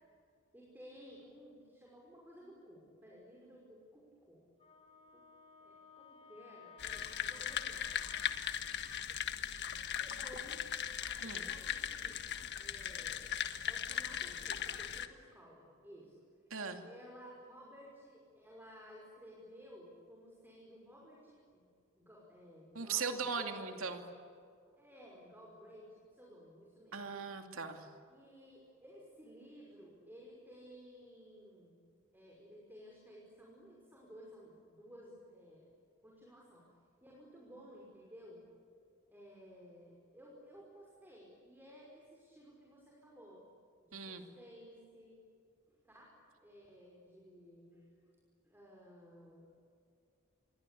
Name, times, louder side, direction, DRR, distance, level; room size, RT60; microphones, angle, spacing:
voice 1, 0.5-4.5 5.1-5.2 5.6-8.2 10.0-10.6 11.0-13.4 13.7-16.2 16.8-21.7 22.0-24.0 24.8-27.0 28.1-31.8 32.1-35.7 36.0-36.7 37.0-38.4 39.1-43.5 43.8-45.2 45.7-48.2 48.4-49.7, equal, 10° right, -3 dB, 5.6 m, -56 dB
Wind instrument woodwind instrument, 4.6-9.0, left 4 dB, 30° left, 4.0 m, -58 dB
sound 1, 6.8-15.1, left 9 dB, 55° left, 1.5 m, -39 dB
voice 2, 16.5-16.8 22.7-24.0 26.9-27.9 43.9-44.3, right 5 dB, 80° right, 5 dB, 2.6 m, -39 dB
27.5 x 23.5 x 8.6 m, 2.4 s
head